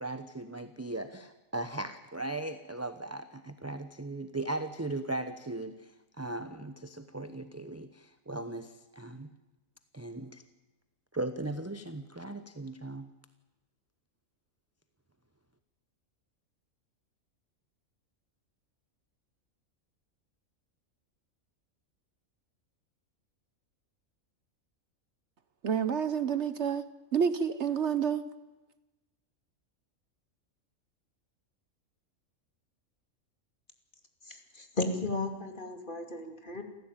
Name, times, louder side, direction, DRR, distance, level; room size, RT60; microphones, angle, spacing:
voice 1, 0.0-5.9 6.2-9.3 9.9-10.4 11.1-13.1, right 2 dB, 15° right, 0.9 m, -38 dB
voice 2, 25.6-26.8 27.1-28.2, right 7 dB, 60° right, 1.2 m, -28 dB
voice 3, 34.3-36.6, left 2 dB, 35° left, 2.8 m, -35 dB
28.5 x 14.5 x 9.0 m
omnidirectional pair, 1.4 m